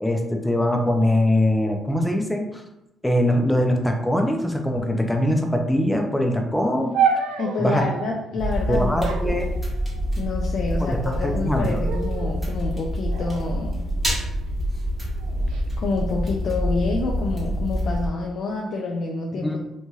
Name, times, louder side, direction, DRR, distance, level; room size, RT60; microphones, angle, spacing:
voice 1, 0.0-2.6 3.0-6.9 7.6-7.9 8.7-9.5 10.8-11.8 19.4-19.6, left 1 dB, 5° left, 3 dB, 0.4 m, -22 dB
sound 1, 6.9-8.2 9.0-10.2 11.0-11.5 11.8-12.4 13.1-14.4 15.2-15.6, right 6 dB, 90° right, 0.3 m, -29 dB
voice 2, 7.4-9.4 10.2-13.8 15.8-19.6, left 3 dB, 65° left, 0 dB, 0.4 m, -28 dB
sound 2, 8.4-18.1, equal, 15° right, 1.2 m, -26 dB
3.0 x 2.7 x 2.3 m, 0.89 s
cardioid pair, 90°, 0 cm